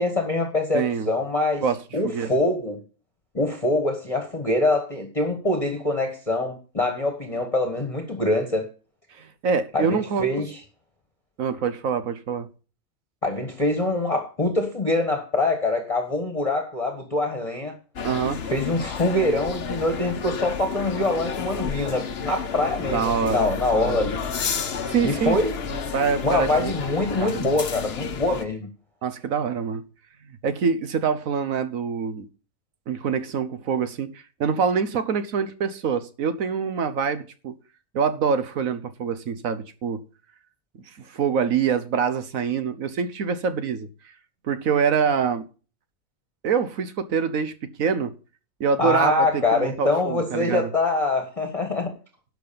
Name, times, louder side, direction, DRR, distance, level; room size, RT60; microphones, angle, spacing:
voice 1, 0.0-1.6 1.9-2.8 3.3-8.7 9.7-10.6 13.2-17.7 18.5-24.3 25.0-25.5 26.2-28.7 48.8-51.9, left 2 dB, 25° left, 1.5 m, -24 dB
voice 2, 0.7-1.1 1.6-1.8 2.0-2.3 9.2-10.2 11.4-12.5 18.0-18.4 22.9-24.1 24.9-25.4 25.9-26.7 27.2-27.5 29.0-29.8 30.4-32.3 32.9-37.6 37.9-40.0 41.1-43.9 44.5-45.5 46.4-48.1 48.6-50.7, right 6 dB, 75° right, 1.4 m, -25 dB
sound 1, 18.0-28.5, left 6 dB, 50° left, 1.1 m, -31 dB
11.5 x 6.0 x 6.9 m
omnidirectional pair, 1.5 m